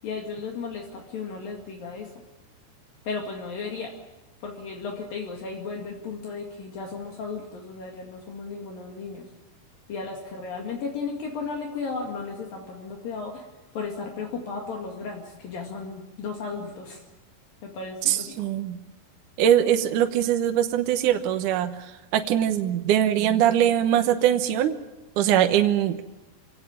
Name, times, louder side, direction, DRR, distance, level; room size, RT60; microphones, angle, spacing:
voice 1, 0.0-2.2 3.1-3.9 4.4-9.2 9.9-13.5 13.7-17.0 17.6-18.5, left 4 dB, 60° left, 1 dB, 3.8 m, -35 dB
voice 2, 18.1-18.8 19.4-21.7 22.1-24.8 25.2-26.0, right 10 dB, 70° right, 7 dB, 2.1 m, -22 dB
25.5 x 17.5 x 9.0 m, 1.1 s
omnidirectional pair, 4.7 m